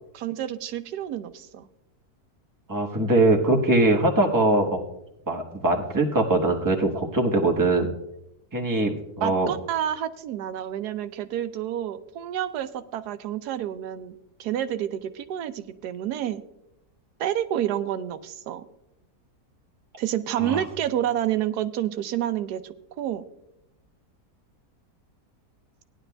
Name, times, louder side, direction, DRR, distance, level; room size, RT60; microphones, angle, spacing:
voice 1, 0.1-1.7 9.2-16.4 17.2-18.6 20.0-22.6 23.0-23.2, right 11 dB, 90° right, 11 dB, 1.2 m, -29 dB
voice 2, 2.7-4.8 5.3-7.9 8.5-9.5 20.4-20.6, right 2 dB, 15° right, 1 dB, 1.0 m, -22 dB
18.0 x 10.5 x 2.2 m, 0.87 s
omnidirectional pair, 1.7 m